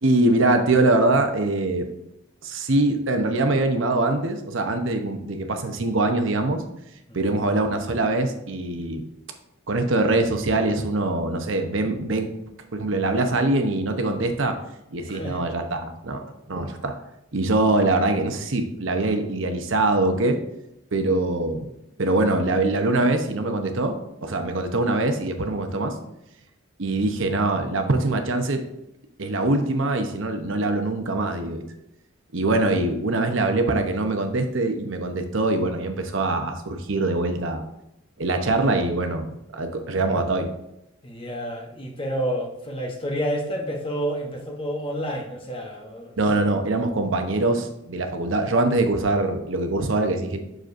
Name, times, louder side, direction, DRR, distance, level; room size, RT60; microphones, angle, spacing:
voice 1, 0.0-1.9 2.4-6.6 7.1-9.1 9.7-12.3 12.7-14.6 14.9-17.0 17.3-20.4 20.9-21.7 22.0-25.9 26.8-28.6 29.2-31.6 32.3-37.7 38.2-40.5 46.2-50.4, right 2 dB, 70° right, 6 dB, 0.8 m, -23 dB
voice 2, 15.1-15.4 41.0-46.5, equal, 25° left, 2 dB, 1.0 m, -30 dB
7.5 x 6.4 x 2.6 m, 0.84 s
head